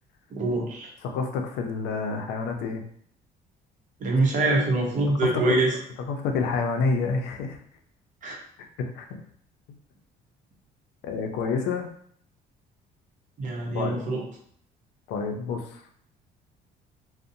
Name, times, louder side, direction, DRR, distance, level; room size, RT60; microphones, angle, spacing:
voice 1, 0.3-0.9 4.0-5.8 8.2-8.4 13.4-14.2, right 2 dB, 50° right, 0 dB, 0.8 m, -24 dB
voice 2, 1.0-2.8 5.2-5.6 6.1-7.6 8.8-9.2 11.0-11.9 13.7-14.0 15.1-15.8, left 4 dB, 90° left, 4 dB, 0.5 m, -28 dB
2.6 x 2.1 x 2.6 m, 0.62 s
cardioid pair, 110°, 17 cm